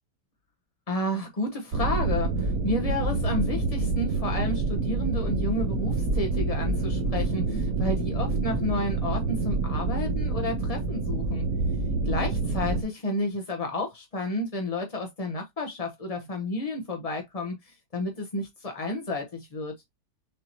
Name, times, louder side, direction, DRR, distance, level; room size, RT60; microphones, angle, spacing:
voice 1, 0.9-11.5 12.0-19.7, left 1 dB, 35° left, 0.6 m, -31 dB
sound 1, 1.7-12.8, right 3 dB, 60° right, 1.2 m, -27 dB
6.5 x 2.7 x 2.9 m
omnidirectional pair, 1.9 m